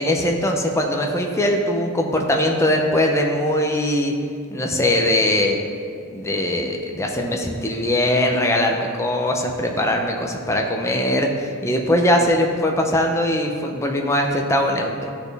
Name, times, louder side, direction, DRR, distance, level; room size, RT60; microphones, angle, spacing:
voice 1, 0.0-4.1 4.5-5.6 6.1-15.1, left 1 dB, 15° left, 2 dB, 0.6 m, -21 dB
12.0 x 4.3 x 3.4 m, 2.3 s
head